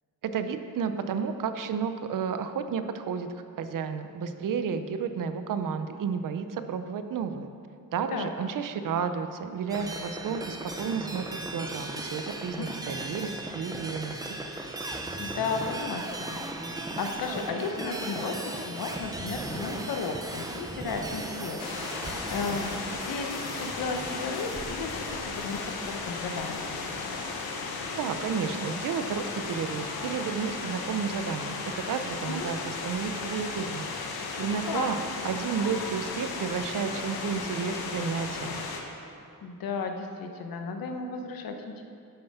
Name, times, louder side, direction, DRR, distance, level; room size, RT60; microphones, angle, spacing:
voice 1, 0.2-3.3 3.6-7.5 7.9-14.4 27.9-35.0 35.2-38.6, right 6 dB, 60° right, 9 dB, 0.7 m, -32 dB
sound 1, 9.7-27.6, right 2 dB, 10° right, 0.7 m, -38 dB
voice 2, 15.2-21.6 22.3-26.7 32.3-32.5 34.7-34.9 39.4-41.8, left 4 dB, 70° left, 4 dB, 1.2 m, -34 dB
sound 2, 21.6-38.8, left 4 dB, 90° left, 1.5 m, -35 dB
11.5 x 9.1 x 5.7 m, 2.5 s
wide cardioid pair, 170°, 36 cm